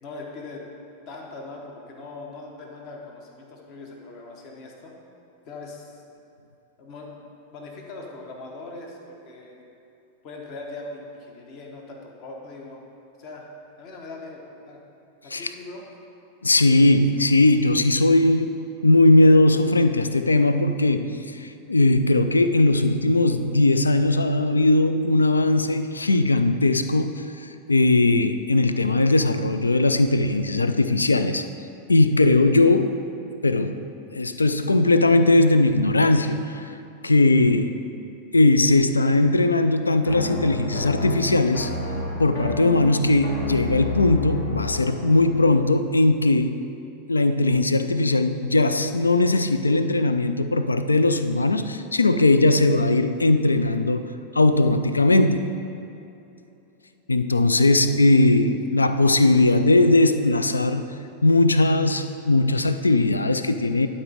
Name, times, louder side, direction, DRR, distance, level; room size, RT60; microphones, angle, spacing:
voice 1, 0.0-0.6 1.1-4.9 5.4-6.0 6.8-7.2 7.5-9.6 10.2-12.8 13.2-13.5 13.8-14.8 15.2-15.8 57.7-57.8, left 3 dB, 40° left, 0 dB, 1.1 m, -40 dB
voice 2, 16.4-31.4 31.9-33.0 33.4-33.8 34.1-36.7 37.0-37.8 38.3-41.7 42.2-46.6 47.1-55.5 57.1-60.8 61.2-63.9, left 2 dB, 80° left, 10 dB, 0.3 m, -19 dB
sound 1, 40.1-45.6, left 2 dB, 60° left, 1.3 m, -31 dB
11.5 x 4.3 x 4.9 m, 2.8 s
figure-of-eight pair, 90°, 0 cm